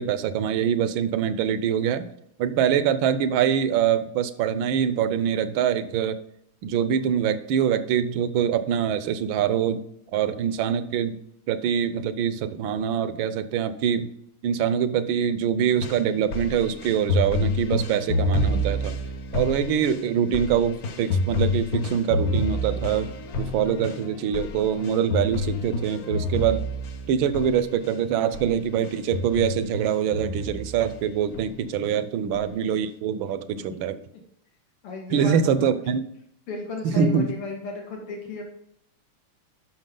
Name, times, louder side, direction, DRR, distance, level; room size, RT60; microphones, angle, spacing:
voice 1, 0.0-2.1 2.4-6.2 6.6-9.8 10.1-11.2 11.5-14.1 14.4-19.0 19.3-23.1 23.4-26.6 27.1-34.0 35.1-36.0 36.8-37.3, right 8 dB, 75° right, 12 dB, 1.3 m, -24 dB
sound 1, 15.8-28.0 28.3-28.5 28.8-31.0 31.3-31.9 32.3-32.4, left 1 dB, 60° left, 1.0 m, -28 dB
voice 2, 34.8-35.8 36.5-38.4, left 3 dB, 90° left, 1 dB, 2.5 m, -34 dB
10.5 x 6.0 x 3.8 m, 0.73 s
omnidirectional pair, 2.4 m